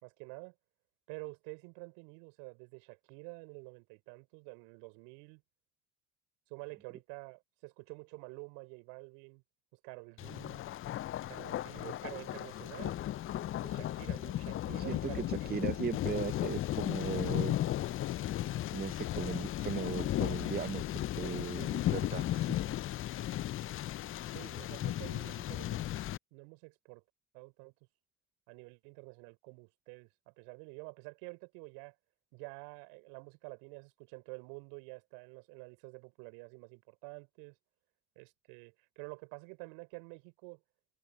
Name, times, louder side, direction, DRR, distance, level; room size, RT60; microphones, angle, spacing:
voice 1, 0.0-0.5 1.1-5.4 6.5-9.4 9.7-10.6 11.3-13.0 13.6-15.6 24.3-25.8 26.3-27.0 27.3-27.7 28.5-31.9 32.3-37.6 38.2-40.6, right 32 dB, 70° right, 4.7 m, -49 dB
Thunder, 10.2-26.2, left 13 dB, 35° left, 0.5 m, -35 dB
voice 2, 14.7-17.6 18.7-20.8 21.2-22.6, right 6 dB, 25° right, 1.0 m, -38 dB
hypercardioid pair, 65°, 40 cm